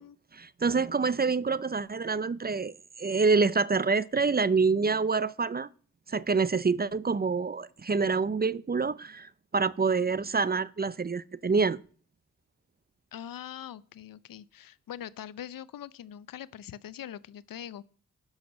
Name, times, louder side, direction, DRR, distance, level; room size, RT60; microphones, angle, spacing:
voice 1, 0.3-5.7 6.1-11.8, right 4 dB, 30° right, 0.6 m, -27 dB
voice 2, 13.1-17.8, left 10 dB, 75° left, 0.6 m, -42 dB
11.0 x 6.4 x 6.3 m
cardioid pair, 50°, 34 cm